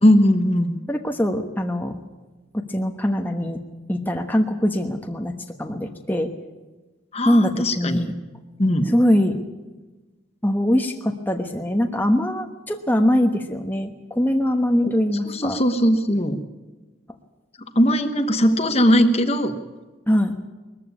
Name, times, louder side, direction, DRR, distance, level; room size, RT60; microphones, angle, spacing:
voice 1, 0.0-0.8 7.1-8.0 8.6-8.9 14.8-14.9 15.3-16.4 17.7-19.6, equal, 30° left, 7 dB, 1.2 m, -19 dB
voice 2, 0.9-1.9 2.5-3.6 3.9-5.3 5.6-6.3 7.2-8.1 8.9-9.4 10.4-15.6 20.1-20.3, equal, 10° left, 3 dB, 1.2 m, -22 dB
21.0 x 14.5 x 9.8 m, 1.2 s
head